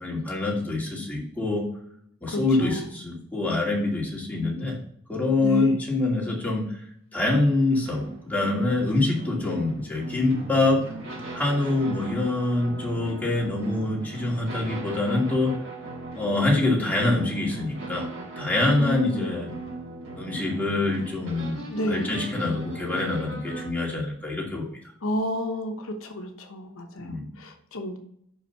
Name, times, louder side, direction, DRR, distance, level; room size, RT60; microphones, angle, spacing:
voice 1, 0.0-1.6 2.2-4.8 5.1-6.6 7.1-10.8 11.3-15.5 16.2-18.1 18.4-19.5 20.2-24.6 27.0-27.3, left 2 dB, 10° left, -4 dB, 2.3 m, -25 dB
voice 2, 2.3-2.9 5.3-5.8 18.7-19.3 21.7-22.1 25.0-25.7 26.0-28.0, equal, 85° left, 4 dB, 1.1 m, -30 dB
sound 1, 7.8-23.7, right 2 dB, 65° right, 3.6 m, -38 dB
5.8 x 5.3 x 5.7 m, 0.68 s
head